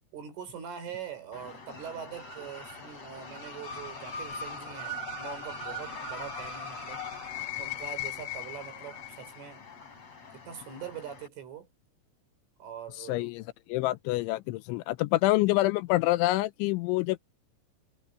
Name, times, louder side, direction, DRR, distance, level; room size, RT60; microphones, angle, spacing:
voice 1, 0.1-7.0 7.5-9.7 10.3-11.7 12.6-13.3, right 8 dB, 70° right, 7.9 m, -43 dB
sound 1, 1.3-11.3, left 4 dB, 30° left, 6.1 m, -40 dB
voice 2, 13.1-13.4 13.7-17.2, left 18 dB, 85° left, 2.7 m, -26 dB
omnidirectional pair, 6.0 m